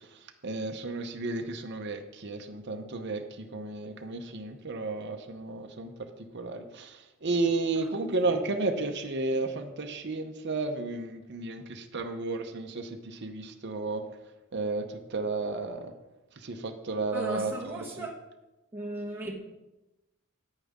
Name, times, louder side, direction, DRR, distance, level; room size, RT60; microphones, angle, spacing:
voice 1, 0.4-6.1 6.3-14.0 14.5-15.9 16.4-18.1, right 3 dB, 55° right, 0.8 m, -33 dB
voice 2, 17.1-18.1 18.7-19.3, right 2 dB, 10° right, 1.3 m, -36 dB
9.9 x 9.0 x 3.7 m
head